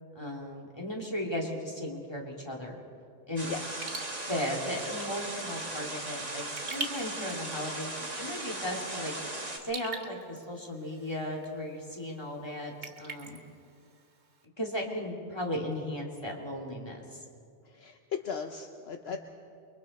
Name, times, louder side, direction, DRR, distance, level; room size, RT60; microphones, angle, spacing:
voice 1, 0.1-2.8 3.3-3.5 4.3-9.1 9.6-13.4 14.6-17.0 19.1-19.2, left 1 dB, 25° left, -1 dB, 2.7 m, -36 dB
sound 1, 3.4-9.6, right 2 dB, 35° right, 2.2 m, -38 dB
voice 2, 3.5-3.8 17.6-19.2, left 6 dB, 65° left, 5 dB, 1.1 m, -37 dB
Raindrop / Drip, 3.7-14.5, right 3 dB, 75° right, 1.8 m, -46 dB
28.5 x 23.0 x 4.3 m, 2.4 s
omnidirectional pair, 1.1 m